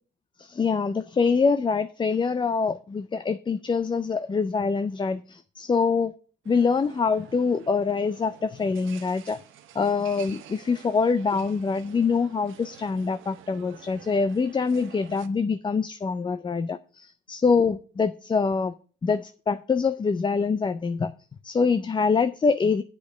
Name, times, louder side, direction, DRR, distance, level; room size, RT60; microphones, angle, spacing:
voice 1, 0.4-6.1 6.5-9.4 9.7-18.7 19.0-21.1 21.4-22.8, left 5 dB, 25° left, 11 dB, 0.4 m, -25 dB
sound 1, 6.4-15.3, right 11 dB, 85° right, 0.8 m, -49 dB
8.3 x 5.2 x 6.3 m, 0.39 s
cardioid pair, 90°, 20 cm